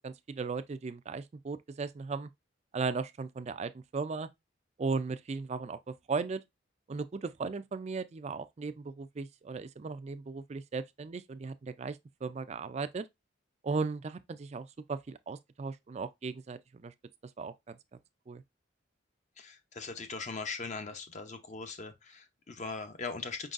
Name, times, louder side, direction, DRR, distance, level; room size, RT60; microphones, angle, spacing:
voice 1, 0.0-2.3 2.7-4.3 4.8-6.4 6.9-13.1 13.6-16.9 17.4-17.7 18.3-18.4, right 4 dB, 35° right, 0.4 m, -37 dB
voice 2, 19.4-23.5, left 4 dB, 40° left, 0.7 m, -40 dB
5.3 x 3.9 x 2.5 m
head